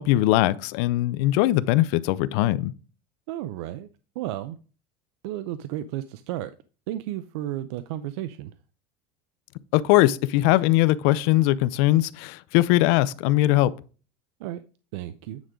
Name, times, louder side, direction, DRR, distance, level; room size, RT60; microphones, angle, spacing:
voice 1, 0.0-2.7 9.7-13.7, left 16 dB, 70° left, 0.5 m, -21 dB
voice 2, 3.3-3.9 4.2-4.6 5.2-6.5 6.9-8.5 14.4-14.6 14.9-15.4, right 13 dB, 85° right, 0.5 m, -33 dB
9.3 x 3.7 x 5.0 m
cardioid pair, 145°, 14 cm